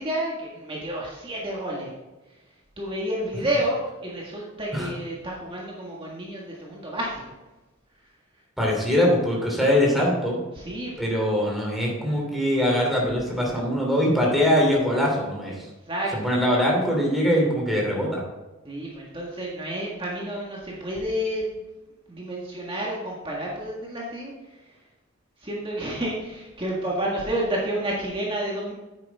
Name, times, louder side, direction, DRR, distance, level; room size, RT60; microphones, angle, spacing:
voice 1, 0.0-1.9 2.8-7.2 10.5-11.1 15.9-16.1 18.6-21.5 22.1-24.3 25.4-28.7, right 1 dB, 25° right, -4 dB, 1.7 m, -30 dB
voice 2, 8.6-10.4 11.0-15.5 16.1-18.2, equal, ahead, -2 dB, 3.0 m, -22 dB
9.9 x 9.1 x 3.5 m, 1.1 s
head